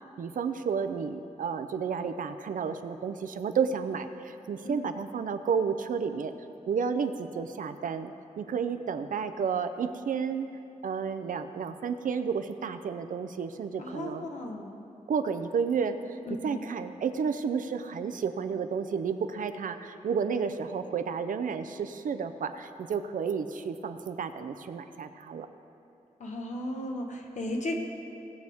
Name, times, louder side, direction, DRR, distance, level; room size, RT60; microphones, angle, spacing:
voice 1, 0.2-6.3 6.7-10.5 10.8-14.3 15.1-25.5, right 6 dB, 85° right, 9 dB, 0.6 m, -31 dB
voice 2, 13.8-14.7 16.3-16.6 26.2-27.8, left 1 dB, 65° left, 2 dB, 1.3 m, -35 dB
18.0 x 7.8 x 3.5 m, 2.8 s
wide cardioid pair, 140°, 13 cm